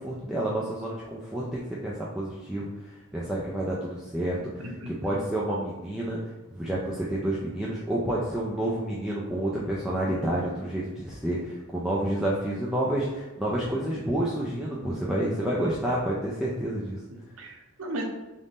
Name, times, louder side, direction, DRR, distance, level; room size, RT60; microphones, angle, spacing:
voice 1, 0.0-2.7 3.1-6.2 6.5-17.0, right 1 dB, 5° right, -6 dB, 0.4 m, -29 dB
voice 2, 4.6-5.3 10.1-10.2 17.1-18.0, right 1 dB, 80° right, 1 dB, 0.7 m, -37 dB
3.5 x 2.5 x 4.1 m, 1.1 s
head